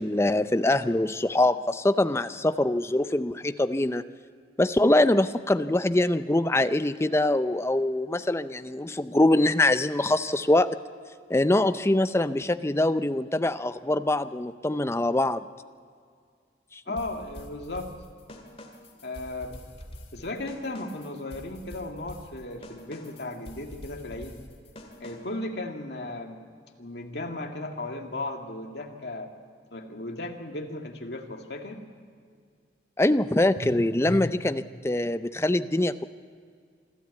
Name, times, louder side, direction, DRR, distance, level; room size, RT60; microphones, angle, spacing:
voice 1, 0.0-4.0 4.6-10.7 11.3-15.4 16.7-16.8 33.0-36.0, left 1 dB, 15° left, 12 dB, 0.5 m, -24 dB
voice 2, 16.9-17.9 19.0-19.6 20.1-24.4 25.0-26.4 26.8-29.3 29.7-31.8 33.5-34.6, left 2 dB, 65° left, 3 dB, 2.1 m, -36 dB
sound 1, 17.0-25.4, left 1 dB, 35° left, 2.1 m, -46 dB
26.0 x 13.0 x 8.3 m, 2.1 s
head